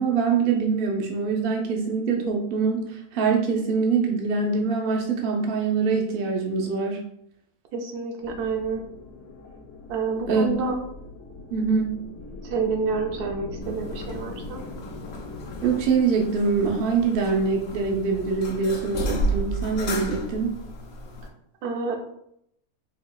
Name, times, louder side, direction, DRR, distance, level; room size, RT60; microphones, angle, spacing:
voice 1, 0.0-7.0 10.3-10.5 11.5-12.0 15.6-20.5, right 5 dB, 55° right, 1 dB, 0.6 m, -24 dB
voice 2, 7.7-8.8 9.9-10.8 12.4-14.6 21.6-22.0, right 4 dB, 90° right, 2 dB, 1.2 m, -28 dB
sound 1, 8.2-15.9, left 3 dB, 90° left, 1.2 m, -40 dB
sound 2, 13.6-21.3, equal, 65° left, 0.5 m, -33 dB
4.2 x 2.8 x 2.3 m, 0.74 s
omnidirectional pair, 1.6 m